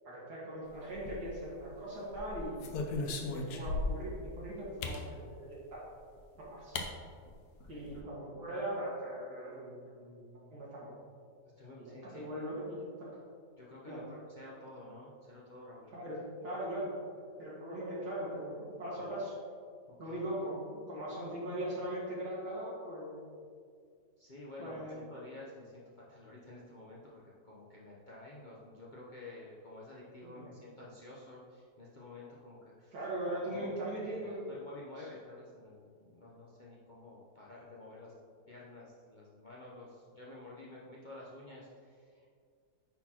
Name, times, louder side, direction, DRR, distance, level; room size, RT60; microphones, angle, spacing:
voice 1, 0.0-5.8 6.4-6.8 7.7-11.0 11.8-13.1 13.8-14.0 15.9-16.9 17.4-19.3 20.0-23.2 24.6-24.9 30.2-30.5 32.9-34.5, right 1 dB, 80° right, -6 dB, 2.4 m, -40 dB
sound 1, 0.9-1.6 2.1-4.1 4.8-5.1 6.2-6.3 6.7-6.9 7.2-7.3 7.6-8.0, left 3 dB, 75° left, 1.2 m, -37 dB
voice 2, 7.7-8.0 11.4-12.3 13.6-16.3 19.9-20.2 24.2-33.0 33.5-33.8 34.2-38.1 38.5-42.3, left 2 dB, 40° left, -6 dB, 0.7 m, -51 dB
9.4 x 4.1 x 2.9 m, 2.2 s
omnidirectional pair, 1.7 m